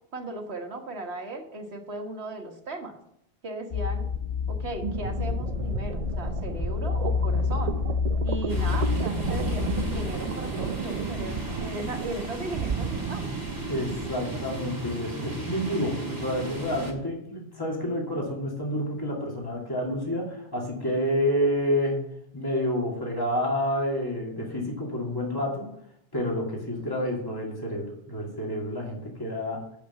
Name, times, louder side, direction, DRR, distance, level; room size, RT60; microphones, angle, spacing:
voice 1, 0.1-3.0 3.4-4.1 4.5-7.8 8.2-13.4, right 2 dB, 75° right, 4 dB, 1.7 m, -37 dB
sound 1, 3.7-10.1, left 5 dB, 65° left, 0.8 m, -28 dB
sound 2, 4.8-14.2, right 7 dB, 50° right, 0.5 m, -34 dB
sound 3, 8.5-16.9, right 2 dB, 20° right, 2.2 m, -35 dB
voice 2, 13.7-22.0 22.3-25.7 26.1-29.6, equal, 20° left, -2 dB, 2.6 m, -29 dB
8.4 x 7.0 x 6.9 m, 0.75 s
omnidirectional pair, 1.1 m